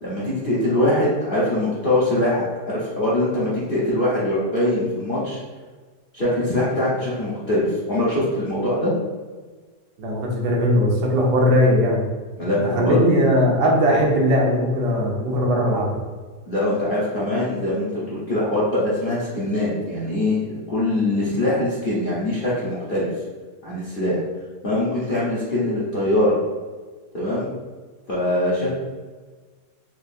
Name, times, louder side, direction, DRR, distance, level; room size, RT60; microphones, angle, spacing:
voice 1, 0.0-5.4 6.1-8.9 12.4-13.0 16.5-23.1 23.6-24.2 24.6-26.4 27.1-27.5 28.1-28.7, left 1 dB, 50° left, -8 dB, 0.6 m, -22 dB
voice 2, 10.0-12.0 12.7-15.9, equal, 75° right, -2 dB, 1.3 m, -19 dB
4.5 x 2.4 x 2.6 m, 1.4 s
omnidirectional pair, 1.9 m